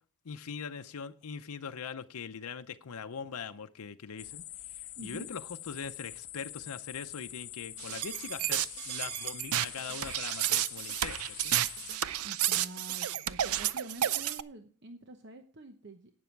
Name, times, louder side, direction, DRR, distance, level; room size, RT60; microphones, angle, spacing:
voice 1, 0.2-11.5, left 6 dB, 90° left, 0.6 m, -42 dB
sound 1, 4.2-12.0, left 14 dB, 70° left, 1.4 m, -45 dB
voice 2, 5.0-5.3 12.2-16.1, right 1 dB, 50° right, 0.9 m, -47 dB
sound 2, 7.8-14.4, right 11 dB, 85° right, 0.5 m, -32 dB
12.5 x 9.3 x 4.6 m
head